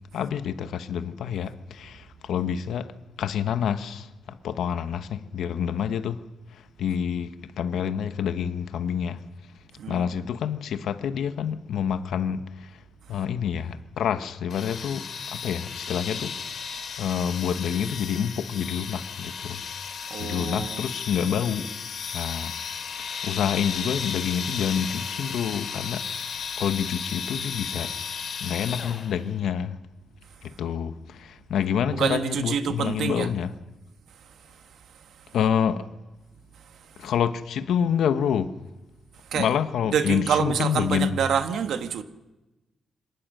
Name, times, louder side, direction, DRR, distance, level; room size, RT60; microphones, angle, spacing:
voice 1, 0.1-2.9 3.2-6.2 6.5-9.2 9.9-12.8 13.1-16.7 17.0-19.6 20.2-21.7 22.1-22.5 22.8-26.3 26.6-28.0 28.4-29.8 30.4-33.5 35.3-35.9 37.0-38.5 39.3-41.2, left 8 dB, 80° left, 1.1 m, -28 dB
voice 2, 9.8-10.1 20.1-20.8 31.9-33.3 35.2-35.3 37.0-37.1 39.3-39.5 39.9-42.0, right 7 dB, 70° right, 1.4 m, -27 dB
sound 1, 14.5-29.3, left 6 dB, 55° left, 2.6 m, -34 dB
25.5 x 18.0 x 6.6 m
wide cardioid pair, 150°, 0 cm